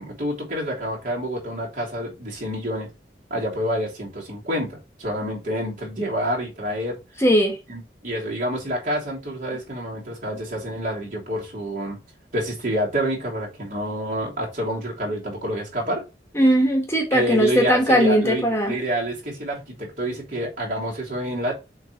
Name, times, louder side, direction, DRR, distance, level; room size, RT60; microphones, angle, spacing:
voice 1, 0.0-2.9 3.3-7.0 7.7-12.0 12.3-16.0 17.1-21.5, equal, 50° right, 3.1 m, -28 dB
voice 2, 7.2-7.6 16.3-18.8, equal, 15° left, 1.3 m, -19 dB
6.9 x 3.4 x 4.5 m
head